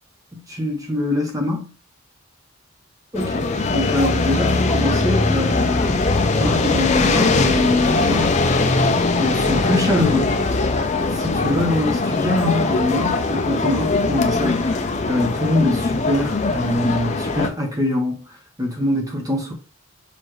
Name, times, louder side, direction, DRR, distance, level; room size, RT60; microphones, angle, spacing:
voice 1, 0.3-1.7 3.1-6.0 6.3-8.4 9.2-10.4 11.1-18.2 18.6-19.5, left 1 dB, 15° right, 1.0 m, -23 dB
sound 1, 3.1-17.5, left 3 dB, 35° left, 0.5 m, -20 dB
6.7 x 2.6 x 3.1 m
head